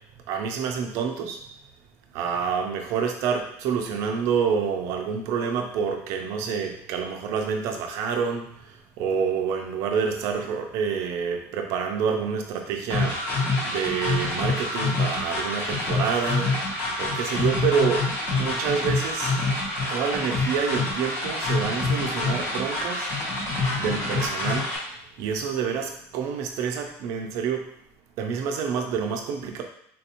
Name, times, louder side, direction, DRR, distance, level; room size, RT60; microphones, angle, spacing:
voice 1, 0.3-1.4 2.1-16.7 17.0-18.1 18.4-19.3 19.9-23.1 23.8-24.7 25.2-27.7 28.2-29.6, right 6 dB, 45° right, 4 dB, 0.5 m, -28 dB
sound 1, 12.9-24.8, left 2 dB, 35° left, 0.9 m, -26 dB
3.8 x 2.6 x 2.8 m, 0.73 s
cardioid pair, 175°, 7 cm